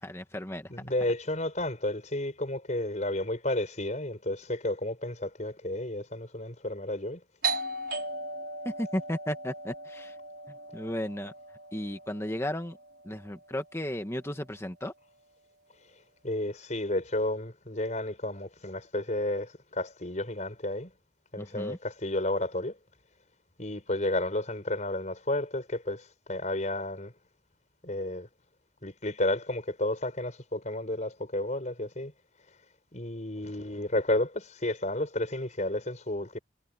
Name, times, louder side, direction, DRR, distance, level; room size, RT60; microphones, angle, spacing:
voice 1, 0.0-0.7 8.6-10.1 10.7-11.3 11.7-12.8 13.0-14.9 21.4-21.8, left 1 dB, 15° left, 1.7 m, -34 dB
voice 2, 0.7-7.2 16.2-20.9 21.3-22.8 23.6-27.1 27.8-28.3 28.8-32.1 32.9-36.4, left 1 dB, 40° left, 5.1 m, -32 dB
Doorbell, 7.4-12.8, right 3 dB, 60° right, 5.5 m, -37 dB
head